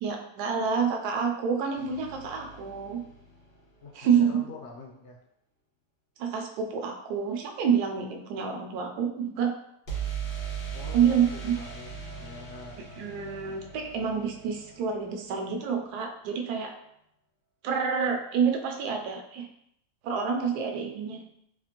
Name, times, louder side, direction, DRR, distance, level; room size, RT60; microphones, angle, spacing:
voice 1, 0.0-3.0 3.9-4.4 6.2-9.6 10.9-11.6 13.0-16.7 17.6-19.5 20.0-21.2, right 7 dB, 75° right, 3 dB, 1.1 m, -28 dB
sound 1, 1.7-3.8 9.9-15.6, right 7 dB, 85° left, 2.3 m, -39 dB
voice 2, 3.8-5.2 10.7-12.8, left 4 dB, 70° left, 0 dB, 0.7 m, -45 dB
4.2 x 2.5 x 2.9 m, 0.75 s
omnidirectional pair, 1.8 m